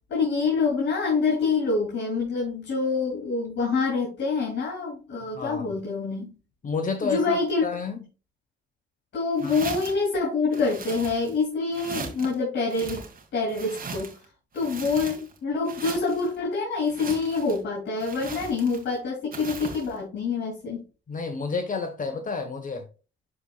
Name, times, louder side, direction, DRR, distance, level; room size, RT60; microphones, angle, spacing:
voice 1, 0.1-6.3 7.0-7.7 9.1-13.0 13.3-14.1 14.5-20.8, left 4 dB, 65° left, 3.2 m, -26 dB
voice 2, 5.3-5.7 6.6-8.0 9.4-9.6 21.1-22.9, left 4 dB, 40° left, 1.2 m, -30 dB
sound 1, 9.4-10.1 10.5-11.4 11.7-12.3 12.7-14.3 14.6-15.4 15.7-16.3 16.8-17.6 18.0-18.9 19.3-19.9, right 5 dB, 45° right, 2.2 m, -39 dB
11.0 x 4.3 x 2.4 m
cardioid pair, 90°, 20 cm